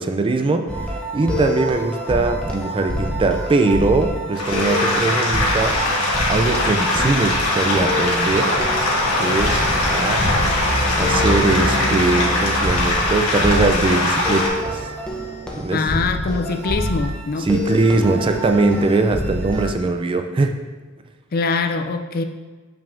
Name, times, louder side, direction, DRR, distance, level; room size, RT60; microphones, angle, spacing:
voice 1, 0.0-5.8 6.3-8.5 9.2-9.6 9.9-10.3 11.0-14.9 15.6-15.8 17.4-20.6, right 3 dB, 25° right, 7 dB, 0.3 m, -21 dB
sound 1, 0.7-19.7, equal, 5° left, 0.7 m, -27 dB
sound 2, 4.3-14.5, left 1 dB, 80° left, 1.3 m, -21 dB
Truck, 5.9-14.9, left 1 dB, 60° left, 0.8 m, -28 dB
voice 2, 15.7-17.5 21.3-22.2, left 4 dB, 45° left, 7 dB, 0.4 m, -23 dB
6.8 x 5.8 x 2.6 m, 1.3 s
head